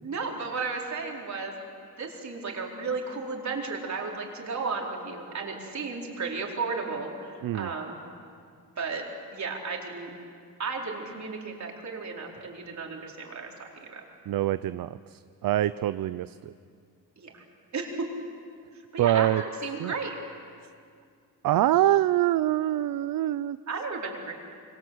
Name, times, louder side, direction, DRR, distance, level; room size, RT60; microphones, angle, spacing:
voice 1, 0.0-1.5 2.0-8.0 8.8-9.0 9.3-10.1 10.6-14.0 17.2-17.4 17.7-18.1 18.7-20.2 23.7-24.3, right 4 dB, 50° right, 0 dB, 4.6 m, -34 dB
voice 2, 14.3-16.5 19.0-19.4 19.8-19.9 21.4-23.6, right 13 dB, 75° right, 15 dB, 0.6 m, -25 dB
26.5 x 25.0 x 8.0 m, 2.3 s
cardioid pair, 110°, 35 cm